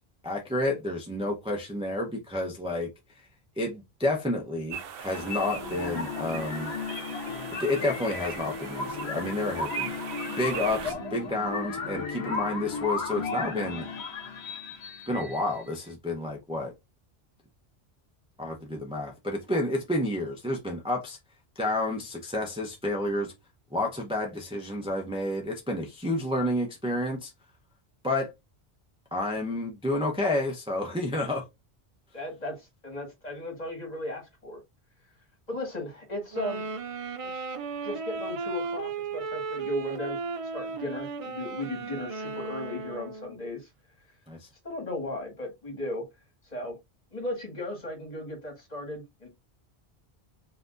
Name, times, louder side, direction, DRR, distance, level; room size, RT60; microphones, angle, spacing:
voice 1, 0.2-2.9 3.6-6.7 7.6-9.9 10.4-13.9 15.1-16.7 18.4-21.2 21.6-23.3 23.7-27.3 28.0-28.3 29.1-31.5 44.3-44.5, left 1 dB, 5° right, 0.7 m, -30 dB
sound 1, 4.7-10.9, right 9 dB, 65° right, 0.8 m, -40 dB
sound 2, 5.1-15.7, left 4 dB, 80° left, 1.2 m, -35 dB
voice 2, 32.1-34.6 35.5-36.6 37.2-37.4 37.8-40.2 40.5-43.7 44.6-46.0 46.5-46.8 47.1-49.3, left 1 dB, 40° left, 1.9 m, -36 dB
sound 3, 36.3-43.4, right 4 dB, 50° right, 0.4 m, -35 dB
5.8 x 2.9 x 2.5 m
omnidirectional pair, 1.1 m